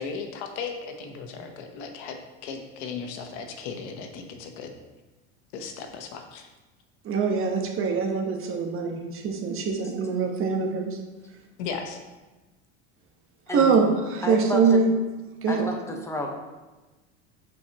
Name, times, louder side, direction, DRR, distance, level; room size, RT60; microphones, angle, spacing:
voice 1, 0.0-4.7 5.5-6.5 11.6-12.0, left 5 dB, 75° left, 5 dB, 1.1 m, -36 dB
voice 2, 7.0-11.0 13.5-14.9 15.4-15.6, right 5 dB, 40° right, 2 dB, 1.1 m, -24 dB
voice 3, 14.2-14.8 15.5-16.3, left 1 dB, 10° left, 1 dB, 1.0 m, -31 dB
8.9 x 4.4 x 2.9 m, 1.2 s
supercardioid pair, 115°, 33 cm